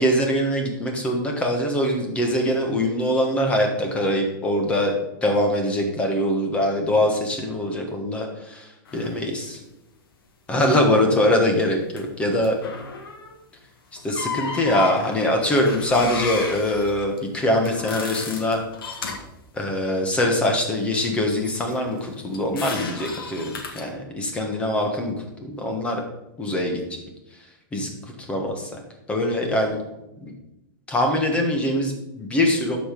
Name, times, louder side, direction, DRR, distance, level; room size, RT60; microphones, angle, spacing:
voice 1, 0.0-4.9 5.2-9.6 10.5-12.6 14.0-18.6 19.5-26.0 26.4-27.0 27.7-28.8 29.1-29.8 30.2-30.3 30.9-32.8, left 1 dB, 10° left, 3 dB, 1.2 m, -23 dB
sound 1, 8.9-9.1 12.0-12.1 12.4-13.4 14.0-19.3 21.4-23.9, left 5 dB, 80° left, 1.9 m, -33 dB
12.5 x 5.0 x 5.2 m, 0.92 s
supercardioid pair, 170°, 12 cm